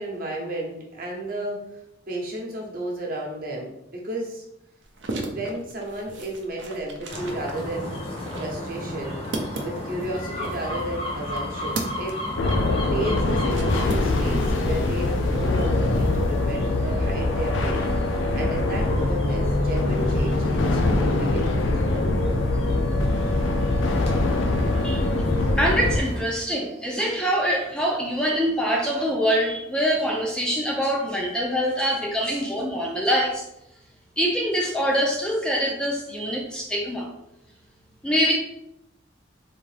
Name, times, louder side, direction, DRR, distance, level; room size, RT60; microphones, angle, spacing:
voice 1, 0.0-1.7 2.1-4.4 5.2-8.0 8.4-9.2 9.6-12.2 12.8-17.9 18.3-22.4, right 2 dB, 50° right, -1 dB, 0.9 m, -33 dB
sound 1, 4.8-14.5 14.8-15.7, right 2 dB, 70° right, 0.5 m, -36 dB
sound 2, 7.1-26.2, left 1 dB, 30° left, 0.7 m, -32 dB
sound 3, 12.4-26.0, left 2 dB, 85° left, 0.5 m, -23 dB
voice 2, 24.8-25.2 25.6-33.4 34.2-37.1 38.0-38.3, equal, 5° left, -1 dB, 0.4 m, -24 dB
3.7 x 2.6 x 3.3 m, 0.82 s
head